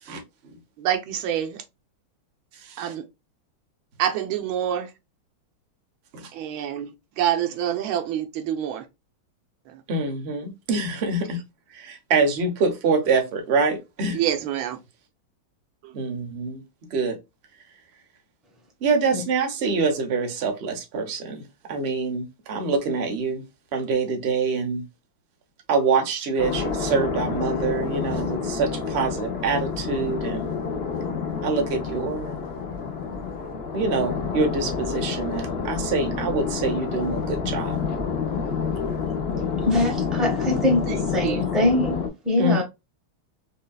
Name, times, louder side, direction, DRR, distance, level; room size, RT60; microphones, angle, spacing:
voice 1, 0.0-0.5 2.5-2.9 6.1-6.3 9.9-11.4 11.7-14.2 15.9-16.6 16.9-17.2 18.8-23.4 23.7-24.8 25.7-30.5 31.4-32.4 33.7-37.8 42.4-42.6, right 4 dB, 45° right, 0.8 m, -25 dB
voice 2, 0.8-1.6 2.8-3.0 4.0-4.9 6.3-8.8 14.1-14.8 41.2-41.5, right 10 dB, 85° right, 1.5 m, -26 dB
sound 1, 26.4-42.1, left 5 dB, 80° left, 0.5 m, -28 dB
voice 3, 39.6-42.6, left 2 dB, ahead, 0.9 m, -23 dB
5.3 x 2.3 x 2.2 m
omnidirectional pair, 2.2 m